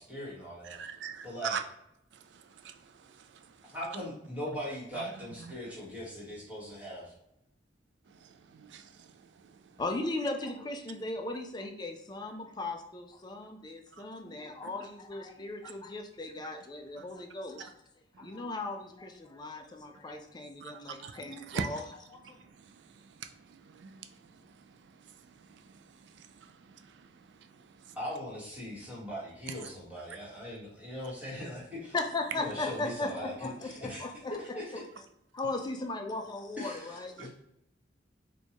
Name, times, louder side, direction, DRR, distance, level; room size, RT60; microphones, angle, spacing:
voice 1, 0.0-0.8 1.2-1.6 3.7-7.1 27.9-31.9 32.3-34.0 34.4-34.8 36.6-37.3, equal, 5° right, -7 dB, 1.3 m, -40 dB
voice 2, 0.6-1.6 2.1-3.7 4.9-5.1 5.4-5.6 8.1-9.8 13.9-14.0 17.0-17.1 18.1-18.4 20.6-21.7 22.2-28.0 29.5-29.6 37.2-37.3, right 6 dB, 70° right, 8 dB, 0.4 m, -44 dB
voice 3, 9.8-17.7 18.2-21.8 22.1-22.2 31.9-34.6 35.3-37.1, left 2 dB, 25° left, 4 dB, 0.4 m, -37 dB
4.3 x 2.3 x 2.9 m, 0.79 s
head